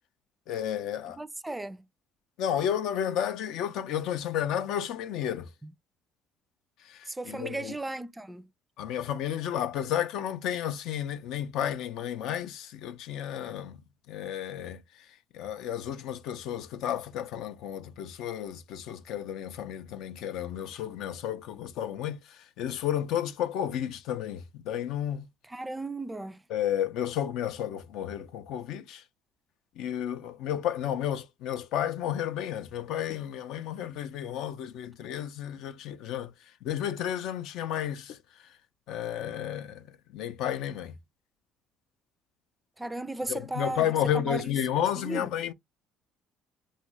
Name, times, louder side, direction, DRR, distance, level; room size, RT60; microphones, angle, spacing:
voice 1, 0.5-1.2 2.4-5.5 6.8-7.7 8.8-15.1 15.3-25.3 26.5-29.0 29.8-36.3 36.6-38.6 38.9-41.0 43.3-45.5, left 10 dB, 75° left, 0.4 m, -32 dB
voice 2, 1.1-1.8 7.1-8.5 25.5-26.4 42.8-44.6 45.0-45.3, right 2 dB, 10° right, 0.3 m, -36 dB
2.7 x 2.4 x 3.0 m
supercardioid pair, 80°, 0 cm